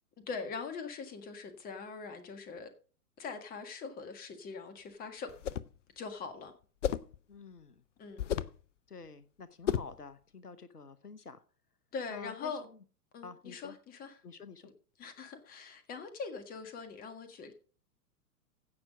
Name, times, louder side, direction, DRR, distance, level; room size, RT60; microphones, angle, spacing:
voice 1, 0.3-2.7 3.2-5.3 5.9-6.5 8.0-8.3 11.9-12.6 13.1-14.2 15.0-17.5, left 5 dB, 20° left, 1.6 m, -42 dB
sound 1, 5.3-5.8 6.8-7.2 8.2-8.6 9.7-10.0, left 9 dB, 55° left, 0.7 m, -33 dB
voice 2, 7.3-7.8 8.9-11.4 12.1-12.6 13.2-13.8 14.2-14.7, left 4 dB, 85° left, 1.0 m, -49 dB
16.0 x 5.9 x 5.1 m
figure-of-eight pair, 105°, 45 cm